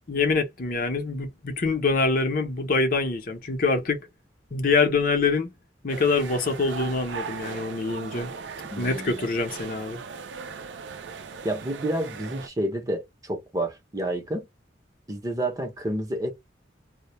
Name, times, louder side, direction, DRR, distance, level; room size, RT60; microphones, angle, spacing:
voice 1, 0.1-4.0 4.5-5.5 5.8-8.3 8.8-10.0, left 3 dB, 50° left, 0.7 m, -25 dB
sound 1, 5.9-12.5, right 5 dB, 70° right, 0.5 m, -38 dB
voice 2, 8.7-9.3 11.4-14.5 15.1-16.3, right 1 dB, 20° right, 0.7 m, -29 dB
2.2 x 2.1 x 2.9 m
head